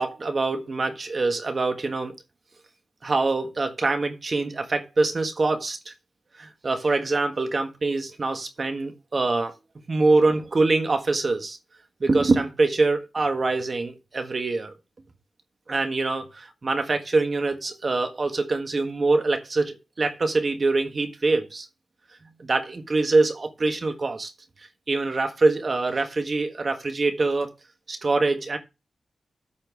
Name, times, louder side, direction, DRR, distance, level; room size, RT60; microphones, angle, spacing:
voice 1, 0.0-2.1 3.0-5.9 6.4-9.5 9.9-11.6 12.0-14.7 15.7-21.7 22.4-24.3 24.9-27.5 27.9-28.6, right 3 dB, 45° right, 1.5 m, -24 dB
8.6 x 4.4 x 6.0 m
cardioid pair, 65°, 0 cm